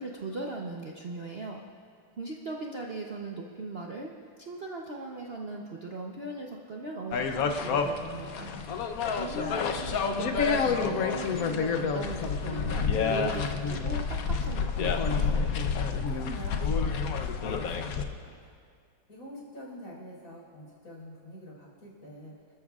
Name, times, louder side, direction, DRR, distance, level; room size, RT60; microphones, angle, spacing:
voice 1, 0.0-1.6 2.2-4.1 4.4-8.5 9.2-15.5, right 2 dB, 75° right, -1 dB, 0.5 m, -38 dB
sound 1, 7.1-18.0, left 5 dB, 70° left, 0.8 m, -29 dB
voice 2, 7.9-8.8 15.9-18.5 19.1-22.3, equal, 40° left, -3 dB, 4.9 m, -46 dB
28.0 x 13.5 x 2.4 m, 2.1 s
omnidirectional pair, 2.4 m